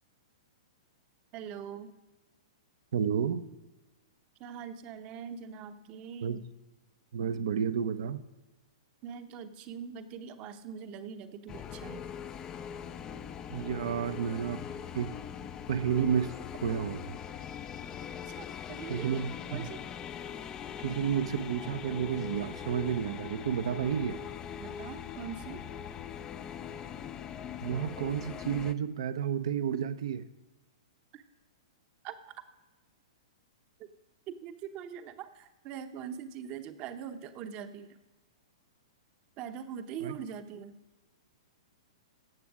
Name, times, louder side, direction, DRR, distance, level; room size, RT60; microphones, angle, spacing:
voice 1, 1.3-1.9 4.4-6.4 9.0-12.1 18.3-19.8 24.6-25.6 31.1-31.2 32.0-32.2 34.3-38.0 39.4-40.7, right 8 dB, 35° right, 9 dB, 0.9 m, -42 dB
voice 2, 2.9-3.4 6.2-6.4 7.1-8.2 13.5-14.6 14.9-15.2 15.7-16.4 16.6-17.2 18.9-19.7 20.8-24.2 27.6-30.3 40.0-40.2, right 8 dB, 65° right, 12 dB, 0.7 m, -31 dB
sound 1, 11.5-28.7, left 8 dB, 25° left, 0.5 m, -41 dB
17.0 x 6.9 x 4.9 m, 1.2 s
hypercardioid pair, 115°, 3 cm